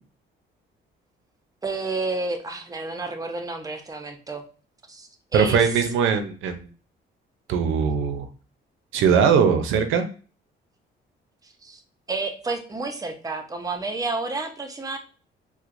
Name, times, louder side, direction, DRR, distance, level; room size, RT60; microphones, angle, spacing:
voice 1, 1.6-4.4 4.9-5.7 11.6-11.8 12.1-15.0, right 3 dB, 20° right, 6 dB, 0.7 m, -30 dB
voice 2, 5.3-6.6 7.5-8.3 8.9-10.0, right 6 dB, 85° right, 8 dB, 0.5 m, -20 dB
4.4 x 2.1 x 2.5 m, 0.38 s
cardioid pair, 90°, 20 cm